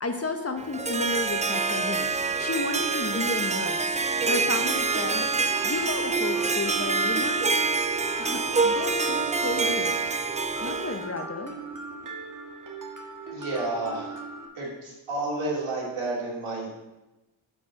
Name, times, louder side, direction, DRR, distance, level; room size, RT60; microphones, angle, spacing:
voice 1, 0.0-2.1 2.4-3.8 4.2-5.2 5.6-7.5 8.2-9.9 10.6-11.6, left 3 dB, 30° left, 6 dB, 0.9 m, -32 dB
Harp, 0.6-11.1, right 4 dB, 15° right, 0.4 m, -26 dB
Mallet percussion, 4.9-14.5, right 3 dB, 40° right, 1.6 m, -39 dB
voice 2, 13.3-14.2 14.5-16.7, right 2 dB, 75° right, -3 dB, 2.9 m, -31 dB
8.6 x 4.7 x 6.3 m, 1.0 s
cardioid pair, 85°, 48 cm